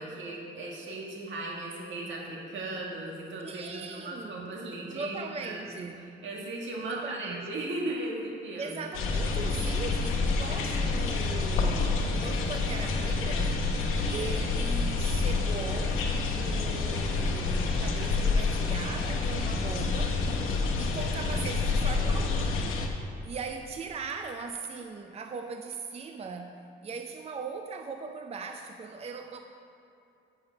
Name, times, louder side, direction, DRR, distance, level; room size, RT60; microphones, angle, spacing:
voice 1, 0.0-5.6 6.2-8.7, right 2 dB, 75° right, -2 dB, 2.0 m, -37 dB
voice 2, 3.4-4.5 4.9-6.0 6.8-7.5 8.6-13.7 14.1-16.0 16.3-20.3 20.8-22.6 23.2-29.4, right 4 dB, 30° right, 5 dB, 0.5 m, -39 dB
sound 1, 8.9-22.9, left 3 dB, 90° left, 1.0 m, -28 dB
7.5 x 6.2 x 6.6 m, 2.7 s
cardioid pair, 90°, 20 cm